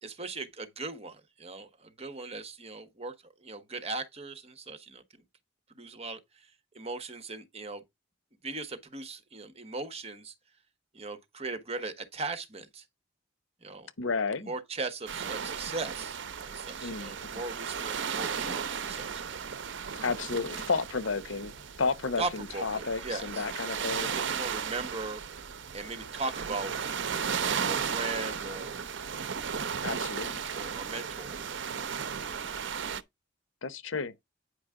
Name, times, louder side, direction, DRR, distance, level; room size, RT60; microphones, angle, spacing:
voice 1, 0.0-3.1 3.4-5.2 5.7-7.8 8.4-10.3 10.9-12.8 13.6-13.9 14.4-16.2 16.4-19.4 22.2-23.5 24.0-25.2 25.7-26.9 27.4-28.8 30.5-31.4, right 3 dB, 35° right, 1.4 m, -38 dB
voice 2, 14.0-14.5 16.8-17.4 20.0-24.1 29.8-30.5 33.6-34.1, left 4 dB, 85° left, 0.9 m, -32 dB
sound 1, 15.1-33.0, right 6 dB, 70° right, 0.7 m, -35 dB
9.3 x 5.2 x 3.7 m
head